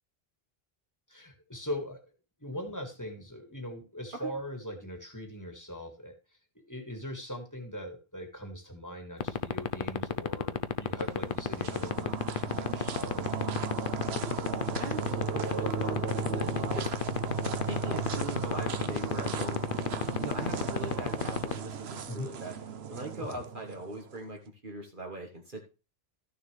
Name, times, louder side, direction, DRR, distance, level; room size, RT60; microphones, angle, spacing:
voice 1, 1.1-2.0 2.4-6.2 6.6-13.6 16.6-16.8 22.1-22.3 23.2-23.4, equal, 20° left, 4 dB, 1.8 m, -41 dB
sound 1, 9.2-21.5, left 8 dB, 60° left, 0.8 m, -28 dB
sound 2, 10.9-24.2, right 6 dB, 80° right, 1.1 m, -36 dB
voice 2, 14.8-16.9 17.7-19.6 20.2-25.6, right 1 dB, 55° right, 1 dB, 1.7 m, -41 dB
13.5 x 6.6 x 3.3 m, 0.31 s
omnidirectional pair, 1.0 m